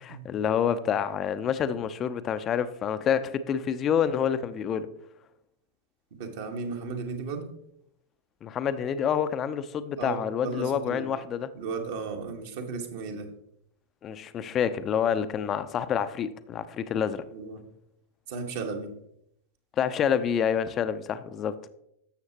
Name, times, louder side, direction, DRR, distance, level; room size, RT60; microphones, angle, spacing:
voice 1, 0.0-4.9 8.4-11.5 14.0-17.2 19.8-21.6, left 8 dB, 30° left, 0.5 m, -28 dB
voice 2, 6.1-7.5 10.0-11.1 11.5-13.3 17.3-17.6 18.3-18.9, right 4 dB, 55° right, 1.4 m, -35 dB
12.5 x 7.2 x 2.9 m
figure-of-eight pair, 90°, 0 cm